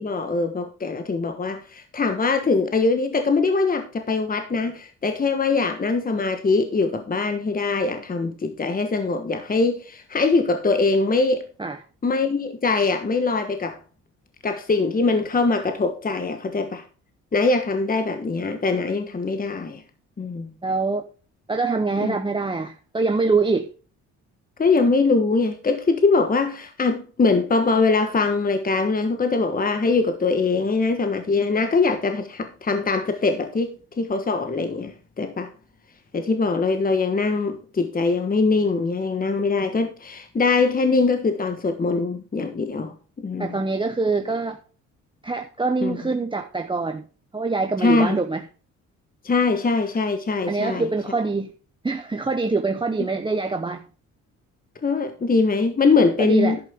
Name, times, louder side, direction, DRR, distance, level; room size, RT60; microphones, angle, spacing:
voice 1, 0.0-11.4 12.0-13.8 14.4-16.8 17.3-19.8 20.2-20.5 22.0-22.2 24.6-35.5 36.1-43.6 45.8-46.0 47.8-48.2 49.2-50.9 54.8-56.6, left 3 dB, 30° left, 1.3 m, -22 dB
voice 2, 20.6-21.0 21.5-23.7 43.4-44.6 45.2-47.0 47.3-48.4 50.5-51.5 51.8-53.8 56.2-56.6, right 3 dB, 15° right, 0.9 m, -24 dB
11.0 x 8.4 x 3.6 m
cardioid pair, 90°, 30 cm